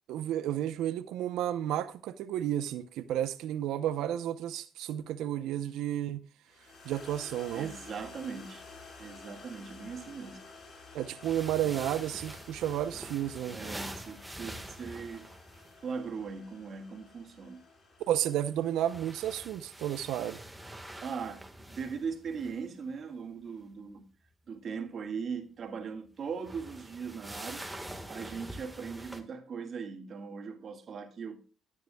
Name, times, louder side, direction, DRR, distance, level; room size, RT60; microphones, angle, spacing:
voice 1, 0.1-6.2 6.8-7.7 10.9-13.6 18.1-20.4, right 11 dB, 90° right, 0.7 m, -32 dB
sound 1, 6.5-20.9, left 3 dB, 50° left, 5.4 m, -52 dB
voice 2, 7.5-8.6 9.0-10.4 13.5-15.3 15.8-17.6 21.0-24.1 24.5-31.4, right 5 dB, 55° right, 1.9 m, -39 dB
sound 2, 11.2-15.8 18.6-22.6 26.3-29.2, right 1 dB, 5° right, 1.5 m, -45 dB
13.5 x 9.6 x 2.3 m
cardioid pair, 90°, 0 cm